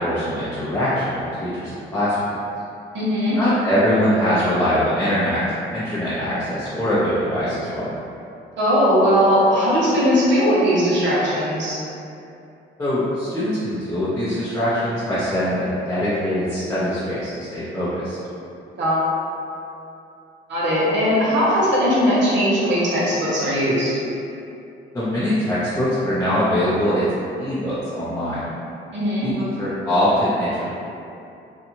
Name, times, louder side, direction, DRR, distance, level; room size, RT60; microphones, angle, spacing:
voice 1, 0.0-2.3 3.4-5.4 5.7-7.9 12.8-18.2 24.9-27.1 27.4-28.5 29.2-29.3 29.6-30.7, equal, 15° left, -12 dB, 0.6 m, -22 dB
voice 2, 2.9-3.4 8.6-11.8 18.8-19.1 20.5-23.9 28.9-29.3, equal, 65° right, -8 dB, 1.0 m, -19 dB
2.7 x 2.3 x 2.8 m, 2.7 s
cardioid pair, 90°, 20 cm